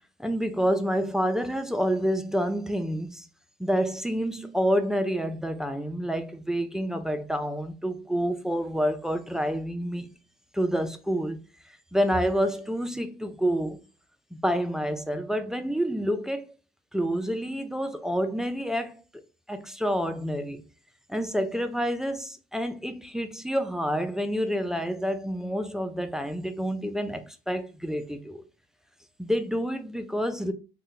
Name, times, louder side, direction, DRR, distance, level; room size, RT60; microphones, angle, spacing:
voice 1, 0.2-3.3 3.6-10.1 10.5-11.4 11.9-13.8 14.3-16.5 16.9-18.9 19.5-20.6 21.1-28.4 29.2-30.5, equal, 5° right, 0.3 m, -28 dB
2.5 x 2.1 x 3.7 m
cardioid pair, 110°, 17 cm